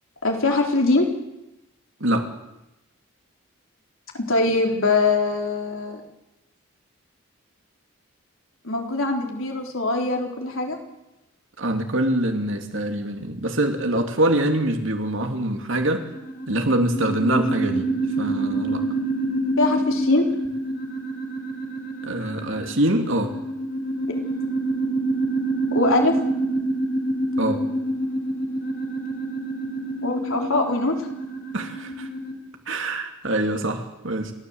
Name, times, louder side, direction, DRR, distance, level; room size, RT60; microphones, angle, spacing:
voice 1, 0.2-1.1 4.1-6.0 8.6-10.8 19.6-20.3 25.7-26.1 30.0-31.1, left 2 dB, 65° left, 2 dB, 4.0 m, -22 dB
voice 2, 11.6-16.0 16.5-17.9 18.2-18.8 22.1-23.3 27.4-27.6 31.5-31.9 32.7-34.3, right 1 dB, 60° right, 5 dB, 2.8 m, -24 dB
sound 1, 16.0-32.3, right 2 dB, 45° left, 3.9 m, -27 dB
29.5 x 14.0 x 8.1 m, 0.92 s
head